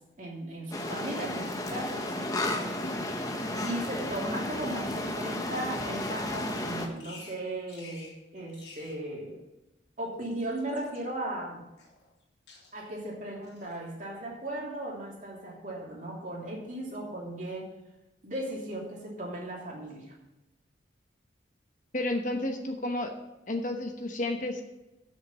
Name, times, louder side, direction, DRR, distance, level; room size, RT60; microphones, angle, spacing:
voice 1, 0.2-2.1 3.6-9.4 10.0-11.7 12.7-17.7 18.2-20.1, right 1 dB, 40° right, -3 dB, 2.8 m, -37 dB
sound 1, 0.7-6.9, left 1 dB, 20° left, 0.9 m, -33 dB
Bird vocalization bird call bird song, 5.9-6.3 7.0-7.4 7.7-8.2 8.5-9.0 10.0-11.0 11.8-12.2 12.5-12.9 13.4-13.8, left 3 dB, 65° left, 2.6 m, -51 dB
voice 2, 21.9-23.1 23.5-24.6, left 1 dB, 45° left, 4 dB, 1.0 m, -31 dB
8.1 x 6.5 x 8.2 m, 0.97 s
head